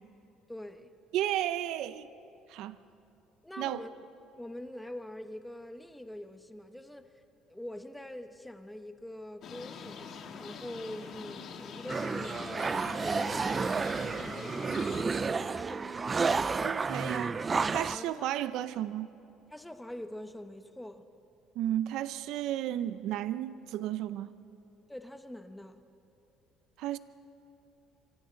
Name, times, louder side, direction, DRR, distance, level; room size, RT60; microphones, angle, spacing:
voice 1, 0.5-0.9 3.4-3.9 4.4-7.1 7.5-10.1 10.4-13.9 14.2-16.2 17.9-18.3 19.5-21.1 24.9-25.8, left 1 dB, 5° left, 0.9 m, -44 dB
voice 2, 1.1-2.1 2.5-2.8 3.6-3.8 16.6-17.4 17.7-19.1 21.6-24.3 26.8-27.0, right 12 dB, 70° right, 0.6 m, -33 dB
sound 1, 9.4-15.0, left 6 dB, 50° left, 1.8 m, -44 dB
sound 2, 11.9-18.0, right 4 dB, 20° right, 0.4 m, -31 dB
27.0 x 25.5 x 3.9 m
cardioid pair, 155°, 0 cm